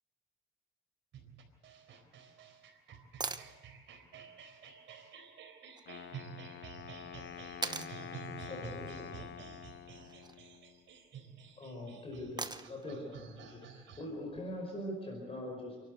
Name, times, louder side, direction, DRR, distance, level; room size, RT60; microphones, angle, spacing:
sound 1, 1.1-14.1, right 6 dB, 70° right, 4.0 m, -51 dB
sound 2, 3.2-3.5 5.8-5.9 7.6-8.0 10.0-10.4 12.4-12.9 15.0-15.1, right 3 dB, 20° right, 1.0 m, -39 dB
Wind instrument woodwind instrument, 5.9-10.8, left 9 dB, 60° left, 1.0 m, -47 dB
voice 1, 7.6-9.7 10.0-10.1 10.5-10.6 12.9-13.1, right 4 dB, 45° right, 3 dB, 2.4 m, -54 dB
voice 2, 8.5-9.1 11.6-15.8, left 1 dB, 30° left, 1 dB, 5.1 m, -42 dB
28.5 x 12.0 x 8.1 m, 1.4 s
cardioid pair, 90°, 20 cm